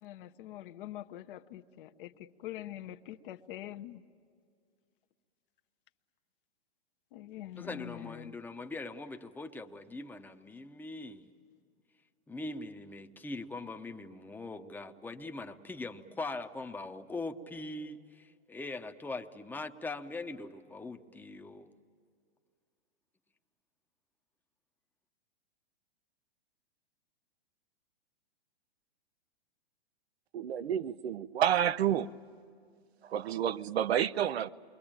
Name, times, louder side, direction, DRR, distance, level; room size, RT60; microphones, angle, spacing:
voice 1, 0.0-4.0 7.1-8.4, left 13 dB, 55° left, 0.9 m, -45 dB
voice 2, 7.6-11.3 12.3-21.7, left 2 dB, 5° left, 0.8 m, -41 dB
voice 3, 30.3-32.1 33.0-34.5, right 10 dB, 75° right, 0.7 m, -29 dB
28.5 x 23.0 x 8.8 m
hypercardioid pair, 125°, 32 cm